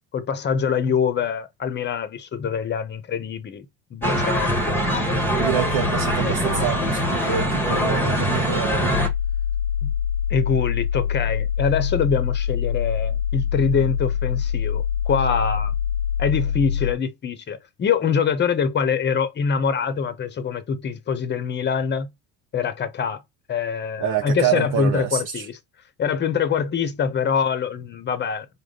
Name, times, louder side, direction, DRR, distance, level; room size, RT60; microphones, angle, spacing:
voice 1, 0.1-3.7 3.9-4.8 9.8-9.9 10.3-15.7 16.2-22.1 22.5-23.2 23.5-25.5 26.0-28.5, left 6 dB, 30° left, 0.8 m, -24 dB
sound 1, 4.0-9.1, equal, 5° left, 1.1 m, -22 dB
voice 2, 5.4-8.9 24.0-25.5, right 9 dB, 55° right, 0.7 m, -27 dB
sound 2, 8.9-16.9, left 8 dB, 75° left, 0.5 m, -24 dB
4.9 x 2.2 x 3.8 m
supercardioid pair, 115°, 37 cm